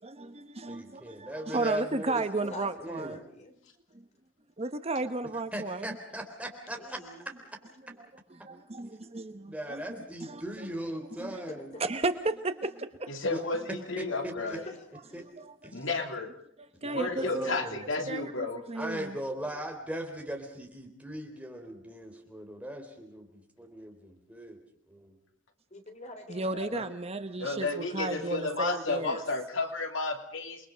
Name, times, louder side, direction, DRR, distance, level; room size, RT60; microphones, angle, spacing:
voice 1, 0.0-3.2 3.9-4.1 4.6-6.0 8.0-10.7 11.2-11.4 11.8-13.1 15.2-15.7 16.6-17.6 18.1-19.2 26.3-29.2, right 2 dB, 30° right, 1.0 m, -34 dB
voice 2, 0.7-3.2 5.5-7.0 7.3-7.4 9.5-11.7 13.3-13.4 13.7-14.6 15.1-15.3 15.6-15.9 17.2-17.8 18.7-24.6 24.9-25.2, right 1 dB, 5° right, 3.9 m, -39 dB
voice 3, 2.1-3.6 6.7-7.3 11.5-11.8 14.5-15.2 25.7-26.5, left 2 dB, 35° left, 3.3 m, -46 dB
voice 4, 13.1-14.6 15.7-16.3 16.8-18.6 26.5-26.8 27.4-30.7, left 3 dB, 75° left, 2.9 m, -32 dB
29.0 x 22.0 x 5.2 m
head